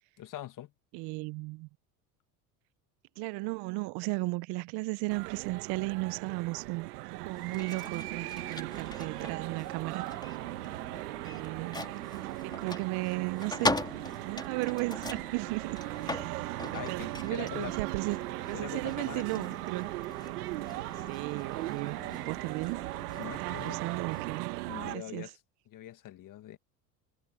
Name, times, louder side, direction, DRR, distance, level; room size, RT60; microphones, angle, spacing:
voice 1, 0.2-0.7 16.6-17.7 18.5-19.6 22.0-22.2 23.2-23.8 24.7-25.3 25.7-26.6, left 13 dB, 45° left, 1.8 m, -43 dB
voice 2, 0.9-1.7 3.2-6.9 7.2-10.1 11.2-11.8 12.2-13.8 14.2-19.9 21.1-22.8 23.4-24.5 24.9-25.3, right 24 dB, 60° right, 0.7 m, -35 dB
sound 1, 5.1-25.0, right 20 dB, 80° right, 1.3 m, -38 dB
sound 2, 7.2-24.4, left 2 dB, 10° left, 2.6 m, -41 dB
sound 3, 17.0-23.2, left 29 dB, 75° left, 5.7 m, -60 dB
supercardioid pair, 100°, 45 cm